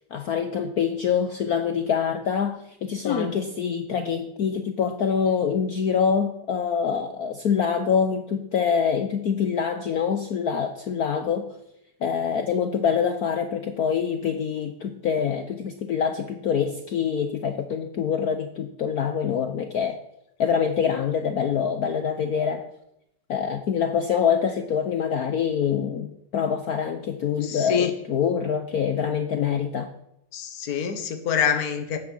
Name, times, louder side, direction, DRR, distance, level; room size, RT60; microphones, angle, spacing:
voice 1, 0.1-11.6 12.0-20.0 20.4-22.7 23.3-29.9, left 7 dB, 65° left, 7 dB, 0.9 m, -25 dB
voice 2, 3.0-3.4 27.4-27.9 30.3-32.0, left 7 dB, 50° left, 7 dB, 1.6 m, -26 dB
13.0 x 8.8 x 5.5 m, 0.81 s
omnidirectional pair, 2.4 m